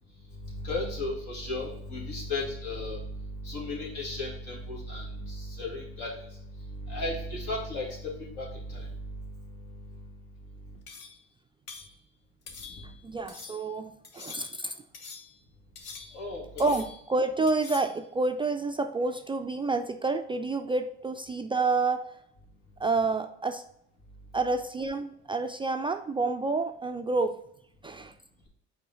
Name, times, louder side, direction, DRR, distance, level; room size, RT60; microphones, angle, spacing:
voice 1, 0.4-6.3 6.7-9.1 16.1-16.8, left 2 dB, 65° left, -3 dB, 2.2 m, -35 dB
sound 1, 10.9-11.2 11.7-11.9 12.5-13.0 13.3-13.7 14.0-14.6 14.9-15.4 15.7-16.3 16.6-17.1 17.5-18.0, left 5 dB, 50° left, 1.1 m, -45 dB
voice 2, 13.0-14.7 16.6-22.2 22.8-23.6 24.3-27.4 27.8-28.1, right 3 dB, 15° right, 7 dB, 0.3 m, -29 dB
5.4 x 4.7 x 3.9 m, 0.73 s
hypercardioid pair, 60°, 32 cm